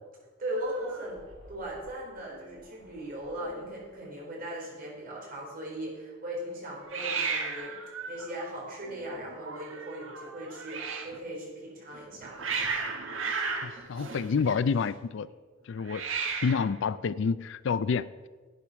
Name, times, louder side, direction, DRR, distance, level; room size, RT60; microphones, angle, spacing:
voice 1, 0.4-1.2 1.5-7.7 8.1-12.4, right 1 dB, 45° right, -3 dB, 4.2 m, -38 dB
Hiss, 0.6-1.9 2.2-2.6 2.9-3.0 3.2-3.9 6.9-11.2 11.9-14.9 15.8-16.8, right 5 dB, 70° right, 1.4 m, -36 dB
voice 2, 13.6-15.3 15.7-16.0 16.4-18.1, left 5 dB, 60° left, 17 dB, 0.4 m, -28 dB
10.5 x 8.7 x 5.7 m, 1.4 s
head